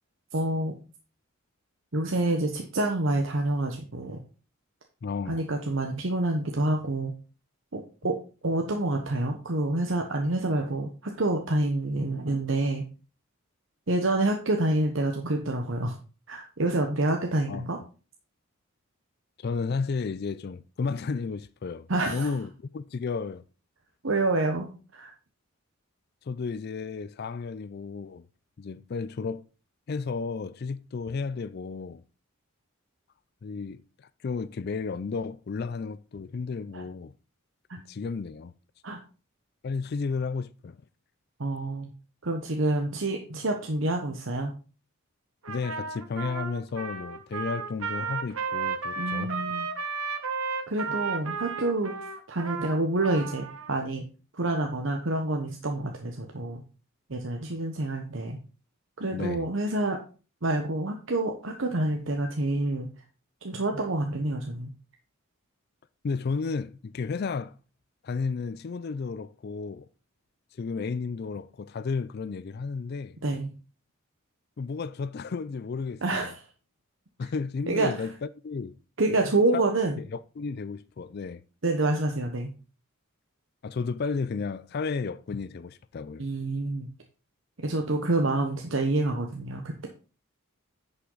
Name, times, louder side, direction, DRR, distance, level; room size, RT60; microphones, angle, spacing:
voice 1, 0.3-0.8 1.9-4.2 5.3-7.1 7.7-8.2 8.4-12.8 13.9-16.0 16.3-17.8 21.9-22.3 24.0-25.1 36.7-36.8 37.7-37.8 38.8-39.0 41.4-41.9 42.2-44.5 49.0-49.7 50.7-51.9 52.3-54.0 54.3-56.6 57.1-58.4 59.0-60.0 60.4-62.9 63.4-64.7 73.2-73.5 76.0-76.4 77.7-78.1 79.0-80.0 81.6-82.5 86.2-86.9 87.6-89.9, right 2 dB, 65° right, 1.1 m, -27 dB
voice 2, 5.0-5.4 17.5-17.7 19.4-23.4 26.2-28.3 28.6-29.5 29.9-32.0 33.4-37.1 37.9-38.5 39.6-40.8 45.5-49.3 59.1-59.5 66.0-67.6 68.0-69.9 70.6-73.2 74.6-76.3 77.2-78.1 78.4-78.8 79.5-79.7 80.1-81.4 83.6-86.3, left 4 dB, 50° left, 0.4 m, -33 dB
Trumpet, 45.4-53.7, right 5 dB, 85° right, 1.3 m, -33 dB
9.9 x 5.7 x 3.9 m
head